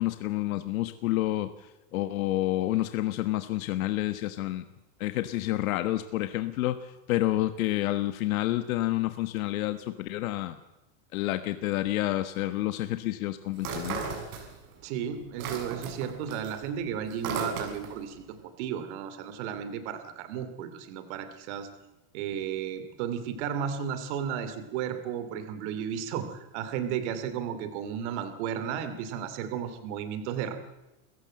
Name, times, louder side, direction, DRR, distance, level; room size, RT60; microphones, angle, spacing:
voice 1, 0.0-1.5 1.9-4.6 5.0-10.6 11.1-14.0, left 15 dB, 75° left, 10 dB, 1.4 m, -29 dB
sound 1, 13.6-14.8 15.1-18.1, right 5 dB, 90° right, 7.2 m, -36 dB
voice 2, 14.8-21.7 22.1-30.6, right 8 dB, 55° right, 10 dB, 2.8 m, -34 dB
28.5 x 15.5 x 7.7 m, 1.0 s
supercardioid pair, 170°, 42 cm